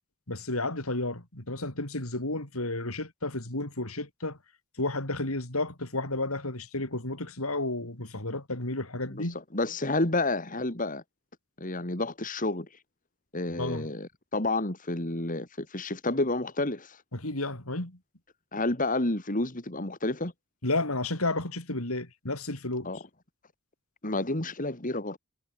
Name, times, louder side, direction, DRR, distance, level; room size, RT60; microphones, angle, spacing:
voice 1, 0.3-4.4 4.8-9.4 13.6-13.9 17.1-18.0 20.6-22.9, left 2 dB, 75° left, 5.1 m, -32 dB
voice 2, 9.5-11.0 11.6-12.8 13.3-17.0 18.5-20.3 22.8-23.0 24.0-25.2, left 2 dB, 40° left, 2.9 m, -30 dB
head